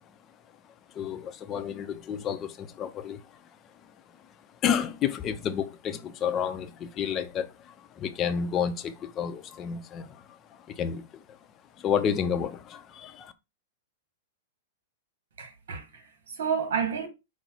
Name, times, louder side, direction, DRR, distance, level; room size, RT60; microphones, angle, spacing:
voice 1, 0.9-3.2 4.6-11.1 11.8-13.3, left 8 dB, 30° left, 0.6 m, -30 dB
voice 2, 15.4-17.1, right 6 dB, 70° right, 1.3 m, -31 dB
5.4 x 2.2 x 4.4 m
hypercardioid pair, 125°, 0 cm